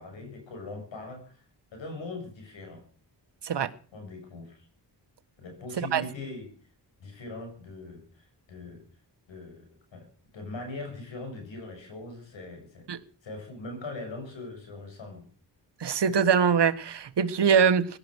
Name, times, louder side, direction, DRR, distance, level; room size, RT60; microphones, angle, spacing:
voice 1, 0.0-1.4 1.7-2.8 3.9-4.6 5.4-6.5 7.0-8.9 9.3-10.1 10.3-12.9 13.2-15.3, left 2 dB, 85° left, 4 dB, 7.2 m, -41 dB
voice 2, 15.8-17.9, right 7 dB, 65° right, 11 dB, 1.5 m, -23 dB
17.5 x 12.0 x 6.5 m, 0.42 s
cardioid pair, 65°, 44 cm